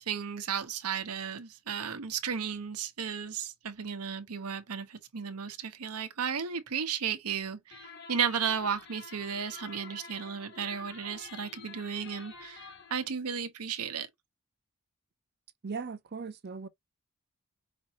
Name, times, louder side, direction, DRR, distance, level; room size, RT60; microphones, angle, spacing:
voice 1, 0.0-14.1, right 7 dB, 85° right, 0.8 m, -34 dB
sound 1, 7.7-13.1, left 5 dB, 50° left, 0.9 m, -49 dB
voice 2, 15.6-16.7, right 5 dB, 45° right, 0.5 m, -38 dB
5.2 x 3.0 x 2.8 m
head